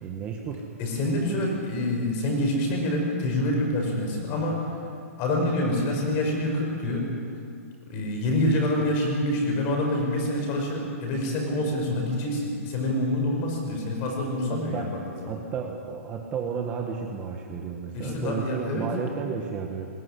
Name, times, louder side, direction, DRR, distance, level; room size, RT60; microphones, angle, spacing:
voice 1, 0.0-0.7 14.5-14.9 15.3-19.9, right 6 dB, 15° right, 2 dB, 1.3 m, -32 dB
voice 2, 0.8-4.6 5.2-7.1 7.9-15.4 17.9-18.9, left 1 dB, 25° left, 1 dB, 5.3 m, -26 dB
21.0 x 18.5 x 9.8 m, 2.3 s
hypercardioid pair, 170°, 8 cm